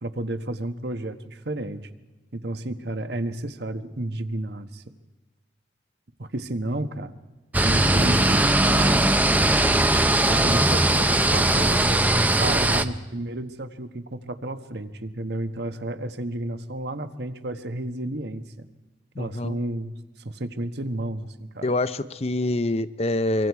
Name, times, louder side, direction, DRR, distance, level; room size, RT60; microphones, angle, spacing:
voice 1, 0.0-1.9 2.3-4.9 6.2-7.1 7.6-9.4 10.3-18.7 19.2-21.7, right 1 dB, 65° right, 9 dB, 1.3 m, -32 dB
sound 1, 7.5-12.9, right 1 dB, 10° right, 0.6 m, -20 dB
voice 2, 19.2-19.6 21.6-23.5, left 2 dB, 35° left, 14 dB, 0.7 m, -25 dB
24.5 x 24.5 x 4.7 m, 1.2 s
head